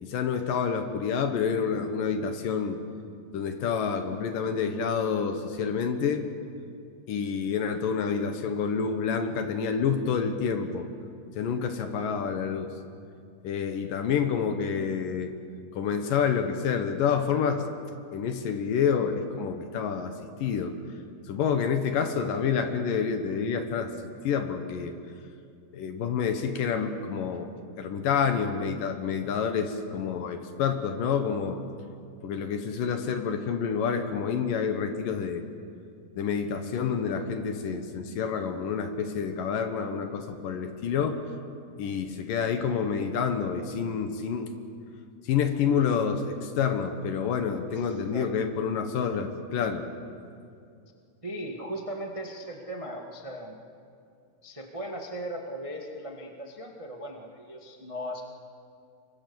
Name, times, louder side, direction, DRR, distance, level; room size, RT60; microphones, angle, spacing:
voice 1, 0.0-2.8 3.3-6.3 7.1-10.9 11.4-12.7 13.4-15.3 15.7-17.7 18.1-20.1 20.4-20.7 21.3-23.9 24.2-24.9 25.7-27.5 27.8-31.6 32.2-35.4 36.2-41.2 41.8-44.5 45.3-49.9, left 6 dB, 70° left, 7 dB, 2.8 m, -28 dB
voice 2, 47.7-48.3 51.2-53.5 54.4-58.2, equal, 55° right, 1 dB, 0.3 m, -38 dB
26.0 x 23.0 x 7.2 m, 2.4 s
omnidirectional pair, 4.3 m